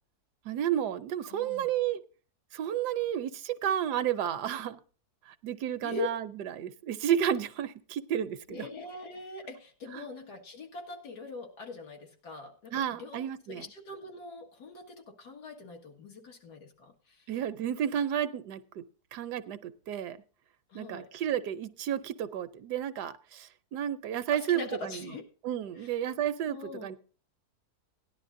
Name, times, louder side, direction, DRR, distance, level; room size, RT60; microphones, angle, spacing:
voice 1, 0.4-2.0 2.5-4.8 5.4-6.3 6.6-8.7 9.9-10.0 12.7-13.7 17.3-18.8 19.1-20.2 20.7-25.1 25.4-27.0, right 10 dB, 90° right, 1.3 m, -32 dB
voice 2, 1.3-1.7 5.8-6.1 8.5-17.3 20.7-21.1 24.3-25.2 25.8-25.9 26.5-26.9, left 3 dB, 85° left, 2.2 m, -42 dB
17.0 x 11.0 x 2.6 m
omnidirectional pair, 1.7 m